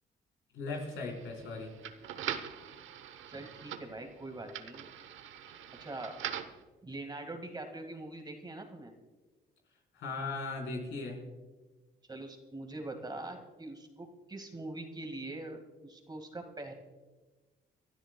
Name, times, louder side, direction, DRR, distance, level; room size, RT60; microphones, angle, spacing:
voice 1, 0.5-1.7 9.9-11.2, left 3 dB, 80° left, -1 dB, 4.3 m, -38 dB
sound 1, 0.7-6.6, right 9 dB, 80° right, 0.9 m, -43 dB
voice 2, 3.3-4.9 5.8-6.2 6.8-8.9 12.1-16.7, right 2 dB, 20° right, 4 dB, 1.9 m, -43 dB
29.0 x 12.5 x 2.3 m, 1.3 s
cardioid pair, 90°, 20 cm